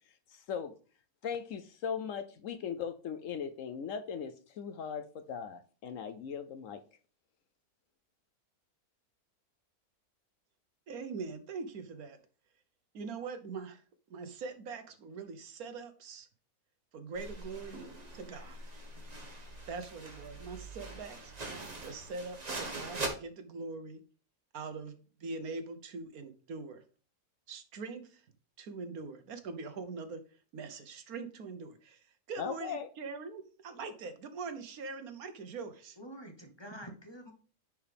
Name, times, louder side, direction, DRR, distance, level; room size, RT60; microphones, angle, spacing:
voice 1, 0.3-0.7 1.2-6.8 32.4-32.9, left 7 dB, 65° left, 1.0 m, -38 dB
voice 2, 10.9-12.2 12.9-13.8 14.1-16.3 16.9-17.9 18.1-18.7 19.7-21.3 21.8-24.0 24.5-26.8 27.5-28.3 28.6-30.2 30.5-36.0, right 4 dB, 75° right, 1.4 m, -42 dB
sound 1, 17.2-23.1, right 2 dB, 30° right, 1.3 m, -42 dB
voice 3, 36.0-37.3, right 1 dB, 20° left, 1.0 m, -47 dB
10.0 x 4.7 x 3.4 m
omnidirectional pair, 1.6 m